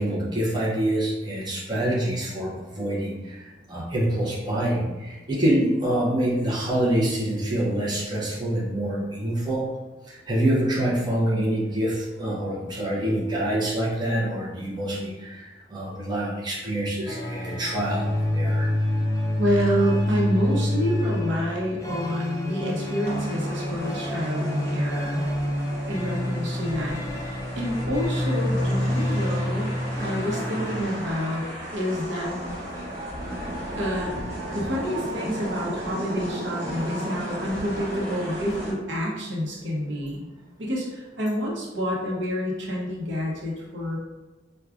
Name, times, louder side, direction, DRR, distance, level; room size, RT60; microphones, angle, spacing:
voice 1, 0.0-9.7 10.1-18.7 27.4-27.5, right 1 dB, 25° right, -6 dB, 0.7 m, -26 dB
sound 1, 17.1-30.8, left 1 dB, 15° left, 0.4 m, -27 dB
voice 2, 19.4-25.2 25.9-31.5 31.7-32.4 33.7-34.2 34.5-40.2 40.6-44.0, equal, 70° right, -3 dB, 0.8 m, -28 dB
sound 2, 23.0-38.7, equal, 40° right, 1.4 m, -35 dB
4.6 x 2.2 x 2.4 m, 1.2 s
head